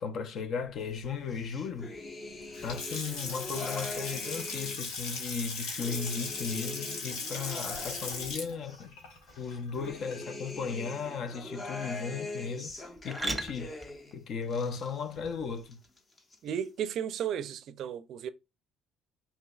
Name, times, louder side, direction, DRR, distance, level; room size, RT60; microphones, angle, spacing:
voice 1, 0.0-1.9 2.6-9.0 9.4-13.7 14.1-15.8, left 5 dB, 60° left, 0.6 m, -36 dB
sound 1, 0.6-15.6, right 2 dB, 10° right, 0.8 m, -47 dB
sound 2, 1.3-4.9 5.4-8.8 9.3-14.1 14.4-15.3 15.6-16.4, left 2 dB, 35° left, 1.0 m, -43 dB
Water tap faucet / Sink (filling or washing) / Splash splatter, 2.4-10.5, left 4 dB, 80° left, 1.3 m, -38 dB
voice 2, 16.4-18.3, right 9 dB, 60° right, 0.4 m, -34 dB
4.9 x 2.8 x 2.3 m
supercardioid pair, 75°, 0 cm